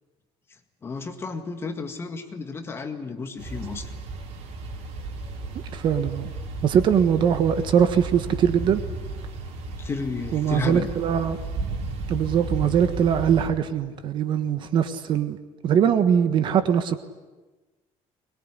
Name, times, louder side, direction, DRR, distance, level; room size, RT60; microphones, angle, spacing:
voice 1, 0.8-3.9 9.8-10.9, left 4 dB, 20° left, 6 dB, 1.9 m, -32 dB
sound 1, 3.4-13.5, right 3 dB, 85° right, 4.7 m, -34 dB
voice 2, 5.7-6.3 6.6-8.8 10.3-11.4 12.1-15.4 15.6-17.0, right 8 dB, 45° right, 10 dB, 1.4 m, -21 dB
23.0 x 21.5 x 9.9 m, 1.2 s
cardioid pair, 170°, 11 cm